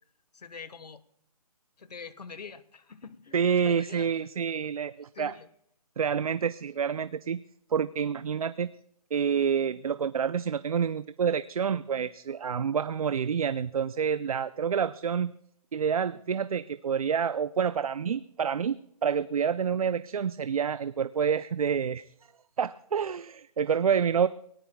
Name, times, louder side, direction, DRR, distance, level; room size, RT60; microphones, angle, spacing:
voice 1, 0.3-1.0 1.8-4.1 5.1-5.5, left 5 dB, 90° left, 14 dB, 1.4 m, -45 dB
voice 2, 3.3-5.3 6.0-7.4 7.7-8.7 9.1-15.3 15.7-22.0 22.6-24.3, right 7 dB, 65° right, 14 dB, 0.5 m, -28 dB
28.5 x 18.0 x 2.3 m, 0.74 s
hypercardioid pair, 175°, 20 cm